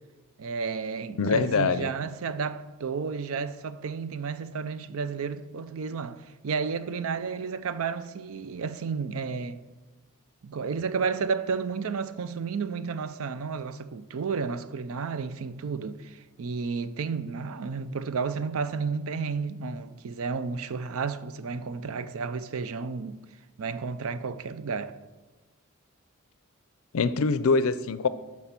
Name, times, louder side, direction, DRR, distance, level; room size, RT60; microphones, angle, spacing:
voice 1, 0.4-9.6 10.4-23.2 23.6-25.0, right 5 dB, 65° right, 0.5 m, -32 dB
voice 2, 1.2-1.9 26.9-28.1, left 4 dB, 65° left, 0.5 m, -24 dB
12.5 x 4.5 x 5.9 m
head